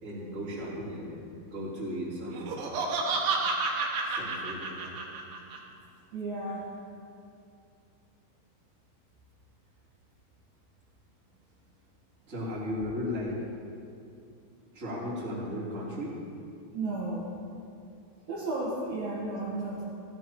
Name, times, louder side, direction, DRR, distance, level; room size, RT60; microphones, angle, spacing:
voice 1, 0.0-1.2 1.5-2.5 4.0-5.0 12.3-13.3 14.7-16.1, left 1 dB, 20° right, -9 dB, 3.0 m, -35 dB
Laughter, 2.3-5.6, right 4 dB, 75° right, 3.6 m, -30 dB
voice 2, 6.1-6.7 16.7-17.3 17.8-17.9 18.3-19.8, right 2 dB, 60° right, -8 dB, 3.0 m, -33 dB
17.0 x 13.0 x 3.0 m, 2.5 s
omnidirectional pair, 5.7 m